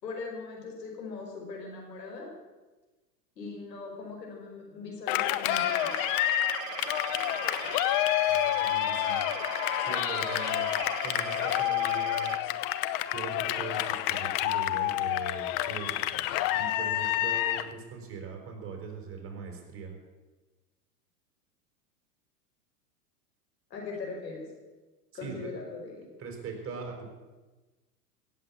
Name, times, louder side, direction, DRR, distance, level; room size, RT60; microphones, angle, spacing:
voice 1, 0.0-2.3 3.4-6.0 23.7-24.4 25.1-26.1, left 3 dB, 90° left, 0 dB, 5.3 m, -40 dB
Cheering, 5.1-17.7, left 14 dB, 45° left, 0.9 m, -29 dB
sound 1, 5.5-12.4, right 12 dB, 50° right, 1.1 m, -39 dB
voice 2, 8.3-9.3 9.8-10.7 11.0-12.4 13.1-16.0 16.5-20.0 25.2-25.5 26.2-27.1, right 5 dB, 25° right, 2 dB, 4.6 m, -41 dB
16.5 x 7.9 x 8.6 m, 1.2 s
hypercardioid pair, 105°, 49 cm